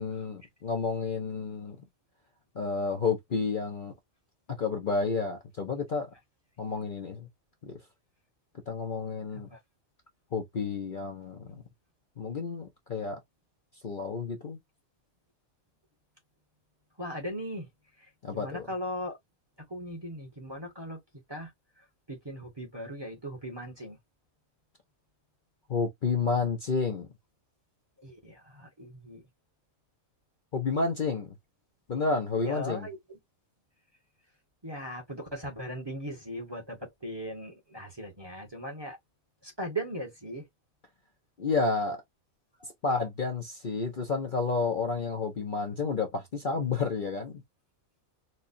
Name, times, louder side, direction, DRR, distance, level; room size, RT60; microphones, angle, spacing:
voice 1, 0.0-1.8 2.5-3.9 4.5-6.1 6.6-7.3 7.6-7.8 8.7-9.5 10.3-11.6 12.2-13.2 13.8-14.6 18.2-18.7 25.7-27.1 30.5-31.3 31.9-32.9 41.4-42.0 42.8-47.4, left 4 dB, 45° left, 0.8 m, -30 dB
voice 2, 17.0-17.7 18.0-19.2 19.7-21.0 21.3-21.5 22.1-24.0 28.0-29.2 32.3-33.2 34.6-39.0 39.4-40.4 42.6-42.7, equal, 20° right, 1.1 m, -38 dB
4.3 x 2.4 x 2.6 m
omnidirectional pair, 1.4 m